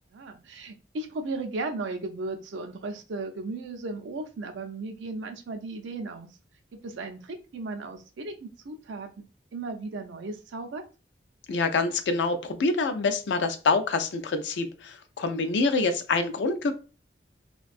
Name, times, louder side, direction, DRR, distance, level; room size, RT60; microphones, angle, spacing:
voice 1, 0.1-6.3 6.8-9.3 9.5-10.8, right 3 dB, 80° right, 5 dB, 0.4 m, -36 dB
voice 2, 11.5-16.7, left 3 dB, 75° left, 8 dB, 0.4 m, -26 dB
2.5 x 2.2 x 2.4 m, 0.34 s
head